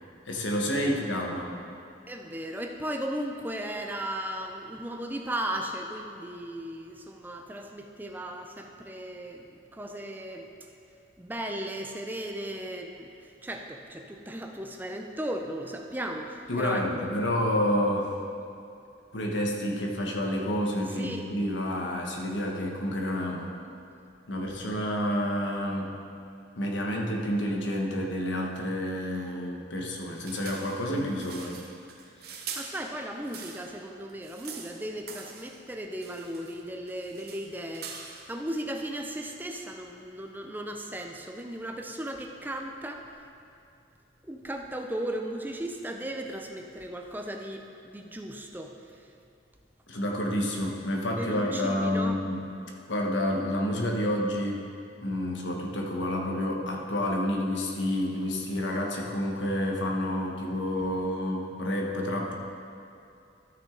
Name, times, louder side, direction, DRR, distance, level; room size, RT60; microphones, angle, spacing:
voice 1, 0.3-1.5 16.5-18.1 19.1-23.5 24.3-25.9 26.5-31.6 32.3-32.4 49.9-52.5 52.9-54.7 55.0-62.4, left 1 dB, 90° left, 0 dB, 1.2 m, -29 dB
voice 2, 2.1-10.5 11.2-17.1 21.0-21.2 32.3-43.1 44.3-49.1 51.2-52.2, right 1 dB, 10° right, 3 dB, 0.5 m, -36 dB
sound 1, 30.2-33.8 34.1-35.6 36.0-36.6 36.9-38.4, right 6 dB, 55° right, 0.8 m, -43 dB
13.0 x 6.1 x 3.8 m, 2.6 s
head